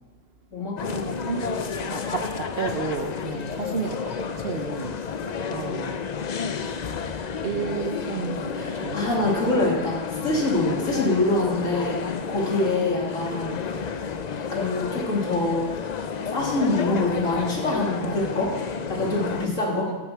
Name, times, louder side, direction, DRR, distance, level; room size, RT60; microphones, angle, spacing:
voice 1, 0.5-1.4 8.5-13.5 14.3-15.7 16.2-18.5 18.9-19.9, left 2 dB, 80° left, -3 dB, 2.9 m, -25 dB
sound 1, 0.8-19.5, left 6 dB, 50° left, 0.5 m, -31 dB
voice 2, 1.0-1.5 1.9-4.9 5.4-6.0 7.4-9.1 18.0-18.3 19.7-20.0, right 5 dB, 55° right, 6 dB, 1.0 m, -32 dB
13.0 x 7.0 x 5.9 m, 1.2 s
omnidirectional pair, 1.3 m